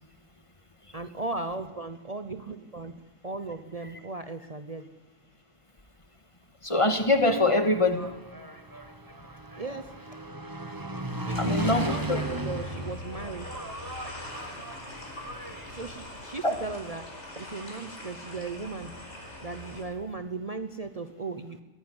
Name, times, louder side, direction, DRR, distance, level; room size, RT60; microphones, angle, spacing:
voice 1, 0.9-4.9 9.6-9.9 11.2-13.5 15.7-17.1 17.4-18.9 19.4-21.6, right 3 dB, 35° right, 9 dB, 1.0 m, -37 dB
voice 2, 6.6-8.1 11.4-12.2 16.4-16.5, left 2 dB, 25° left, 8 dB, 1.9 m, -24 dB
Engine, 7.0-15.9, right 1 dB, 15° right, 1.6 m, -36 dB
sound 1, 11.3-19.8, left 1 dB, 70° left, 5.4 m, -42 dB
22.0 x 15.5 x 9.8 m, 1.2 s
omnidirectional pair, 1.2 m